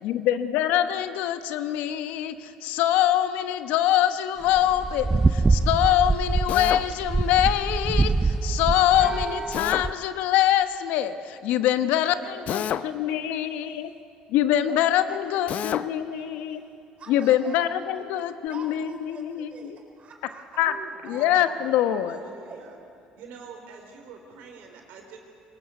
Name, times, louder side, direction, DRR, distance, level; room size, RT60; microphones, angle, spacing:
voice 1, 0.0-13.9 14.3-16.6 17.1-19.5 20.6-20.7 21.1-22.2, left 11 dB, 75° left, 11 dB, 1.1 m, -24 dB
sound 1, 4.5-9.9, right 3 dB, 20° right, 0.7 m, -24 dB
Drill, 6.5-6.9 9.5-9.9 12.5-12.9 15.5-15.9, left 10 dB, 55° left, 0.6 m, -29 dB
voice 2, 11.9-14.1 14.6-14.8 15.1-17.7 17.9-20.6 20.9-22.6, right 4 dB, 45° right, 3 dB, 4.7 m, -47 dB
voice 3, 20.7-22.8 23.1-25.2, right 5 dB, 75° right, 3 dB, 3.9 m, -45 dB
22.5 x 19.5 x 8.2 m, 2.5 s
supercardioid pair, 85°, 3 cm